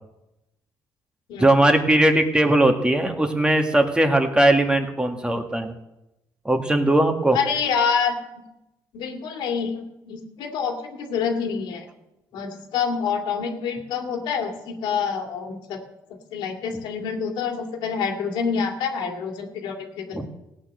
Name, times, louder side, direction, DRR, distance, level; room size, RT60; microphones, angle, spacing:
voice 1, 1.4-5.7 6.5-7.4 20.1-20.3, right 1 dB, 10° right, 5 dB, 1.9 m, -19 dB
voice 2, 7.3-8.2 8.9-11.9 12.3-15.8 16.3-20.3, left 6 dB, 80° left, 4 dB, 2.3 m, -27 dB
16.0 x 8.7 x 6.5 m, 0.92 s
cardioid pair, 80°, 8 cm